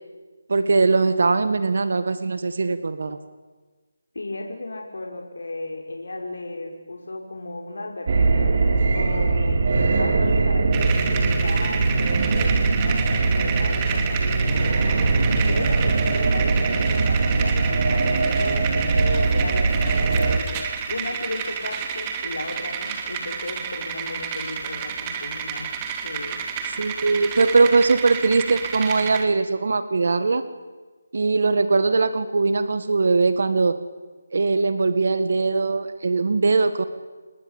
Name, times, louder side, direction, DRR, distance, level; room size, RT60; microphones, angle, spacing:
voice 1, 0.5-3.2 26.7-30.5 31.1-33.7 34.3-36.8, right 3 dB, 60° right, 12 dB, 1.8 m, -21 dB
voice 2, 4.1-8.5 8.9-9.6 10.0-14.8 15.5-20.4 20.9-25.7 26.0-26.4, left 2 dB, 80° left, 2 dB, 5.3 m, -35 dB
sound 1, 8.1-20.4, right 3 dB, 45° right, 3.6 m, -21 dB
sound 2, 10.7-29.3, right 6 dB, 20° right, 2.8 m, -30 dB
30.0 x 20.0 x 9.0 m, 1.3 s
figure-of-eight pair, 165°, 0 cm